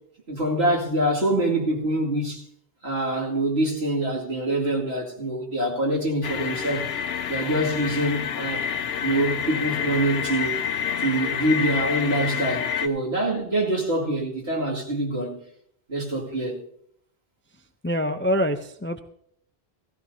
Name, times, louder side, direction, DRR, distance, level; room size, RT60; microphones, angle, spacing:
voice 1, 0.3-2.4 2.8-6.9 7.3-8.7 9.0-10.6 11.0-15.4 15.9-16.6, right 1 dB, 75° right, 2.7 m, -25 dB
sound 1, 6.2-12.9, left 8 dB, 75° left, 0.9 m, -28 dB
voice 2, 17.8-19.0, equal, 20° left, 0.3 m, -25 dB
16.5 x 15.0 x 2.7 m
omnidirectional pair, 1.1 m